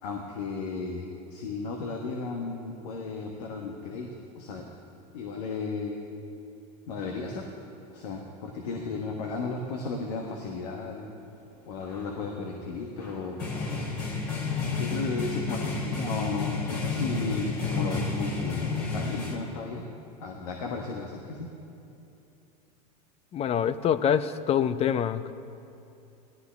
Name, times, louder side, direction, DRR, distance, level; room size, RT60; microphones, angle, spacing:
voice 1, 0.0-4.7 5.1-6.0 6.9-7.4 7.9-11.1 11.7-13.4 14.8-19.8 20.2-21.5, left 4 dB, 75° left, 1 dB, 1.4 m, -34 dB
sound 1, 11.8-12.1 13.0-19.3, left 3 dB, 45° left, 3.3 m, -31 dB
voice 2, 23.3-25.3, left 8 dB, 30° left, 14 dB, 0.5 m, -25 dB
17.5 x 12.5 x 3.5 m, 2.8 s
hypercardioid pair, 105°, 21 cm